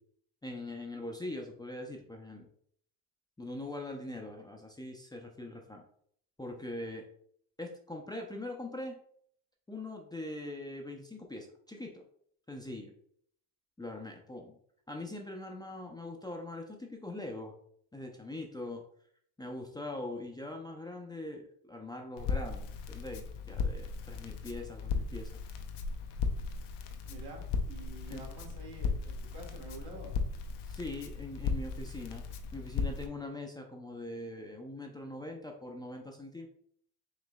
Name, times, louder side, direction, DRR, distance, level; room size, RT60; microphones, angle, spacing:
voice 1, 0.4-2.5 3.4-5.8 6.4-7.0 7.6-9.0 9.7-12.0 12.5-12.9 13.8-14.6 14.9-17.5 17.9-18.8 19.4-25.4 28.1-28.2 30.6-32.3 32.5-36.5, left 2 dB, 10° left, 0 dB, 0.5 m, -42 dB
Crackle, 22.2-33.1, left 5 dB, 80° left, 0.7 m, -36 dB
voice 2, 27.0-30.1, right 2 dB, 65° right, 0 dB, 1.6 m, -48 dB
5.0 x 3.2 x 2.3 m, 0.65 s
supercardioid pair, 85°, 40 cm